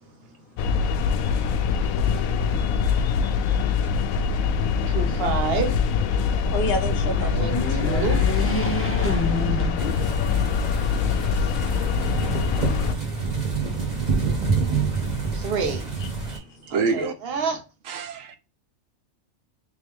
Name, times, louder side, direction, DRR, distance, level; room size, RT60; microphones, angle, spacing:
voice 1, 0.2-0.6 6.1-8.1 9.5-9.9 16.4-16.7, left 2 dB, 45° left, 1.0 m, -35 dB
sound 1, 0.6-12.9, left 6 dB, 90° left, 1.0 m, -23 dB
voice 2, 4.9-5.8 7.2-8.2 13.1-13.2 15.3-15.9 16.7-17.6, right 5 dB, 50° right, 1.1 m, -29 dB
sound 2, 6.9-10.4 10.9-11.0 12.1-12.9, equal, 10° left, 0.7 m, -29 dB
sound 3, 9.8-16.4, right 4 dB, 30° right, 1.5 m, -27 dB
voice 3, 16.7-17.1 17.9-18.4, right 4 dB, 75° right, 1.1 m, -26 dB
3.6 x 3.1 x 3.4 m
omnidirectional pair, 1.4 m